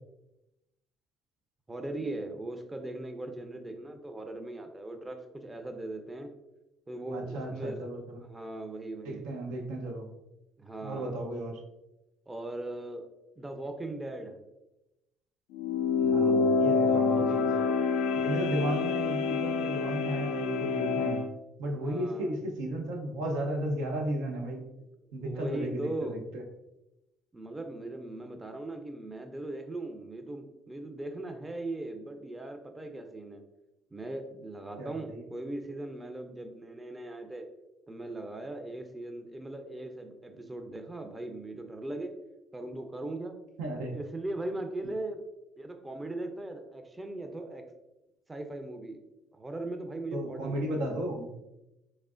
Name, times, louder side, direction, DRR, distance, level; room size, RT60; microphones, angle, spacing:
voice 1, 1.7-6.3 6.9-7.9 8.2-9.3 10.6-11.2 12.3-13.1 13.4-14.4 16.7-17.9 21.8-22.3 25.2-26.2 27.3-33.4 33.9-37.5 37.9-42.1 42.5-43.3 43.9-45.2 45.6-47.6 48.3-49.0 49.3-50.9, right 2 dB, 20° right, 5 dB, 0.5 m, -39 dB
voice 2, 7.1-8.2 9.0-10.1 10.8-11.6 16.0-17.5 18.1-21.2 21.6-24.6 25.1-26.4 34.8-35.2 43.6-44.0 50.1-51.3, right 1 dB, 85° right, 1 dB, 0.6 m, -34 dB
sound 1, 15.5-21.3, left 5 dB, 80° left, 0.3 m, -27 dB
3.6 x 3.2 x 2.4 m, 0.93 s
supercardioid pair, 65°, 0 cm